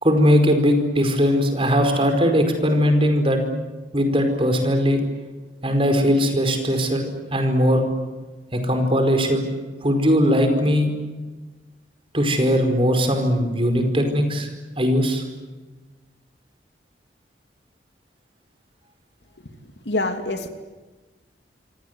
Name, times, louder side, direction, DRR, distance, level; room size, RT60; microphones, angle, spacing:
voice 1, 0.0-3.4 3.9-5.0 5.6-7.8 8.5-9.4 9.8-10.9 12.1-14.5 14.8-15.2, equal, 30° right, 6 dB, 4.9 m, -19 dB
voice 2, 19.4-20.5, left 2 dB, 75° left, 7 dB, 2.9 m, -27 dB
27.0 x 26.0 x 8.1 m, 1.3 s
head